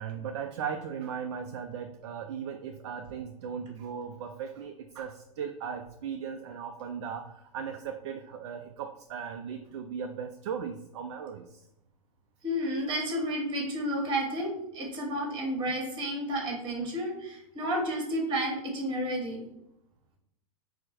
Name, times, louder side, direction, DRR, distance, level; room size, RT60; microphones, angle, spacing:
voice 1, 0.0-11.7, right 7 dB, 50° right, 5 dB, 0.4 m, -37 dB
voice 2, 12.4-19.4, equal, 25° right, 0 dB, 1.5 m, -31 dB
4.4 x 2.1 x 4.2 m, 0.82 s
figure-of-eight pair, 100°, 19 cm